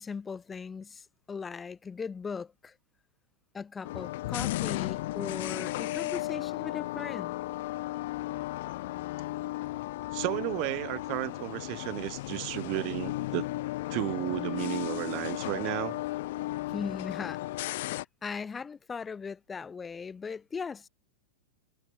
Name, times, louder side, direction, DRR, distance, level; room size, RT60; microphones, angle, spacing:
voice 1, 0.0-2.8 3.5-7.3 16.7-20.9, left 5 dB, 15° left, 0.9 m, -39 dB
sound 1, 3.8-18.0, left 17 dB, 55° left, 0.6 m, -35 dB
voice 2, 10.1-13.5 13.9-16.0, right 30 dB, 45° right, 0.8 m, -33 dB
figure-of-eight pair, 90°, 0 cm